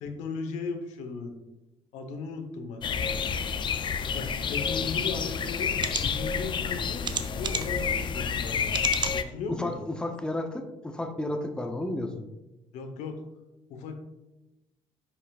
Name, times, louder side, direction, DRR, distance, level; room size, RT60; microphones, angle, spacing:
voice 1, 0.0-1.3 1.9-3.2 4.1-5.7 6.0-7.0 7.3-8.7 9.1-9.8 12.7-13.2 13.7-14.0, left 4 dB, 90° left, 5 dB, 1.1 m, -36 dB
sound 1, 2.8-9.2, left 6 dB, 40° left, 0.5 m, -29 dB
sound 2, 5.0-5.1 5.7-6.0 7.0-7.8 8.7-9.2 9.7-9.8 10.2-10.3, right 6 dB, 40° right, 0.6 m, -32 dB
voice 2, 9.5-12.3, left 1 dB, 5° left, 5 dB, 0.7 m, -32 dB
9.8 x 5.5 x 2.4 m, 0.99 s
cardioid pair, 105°, 12 cm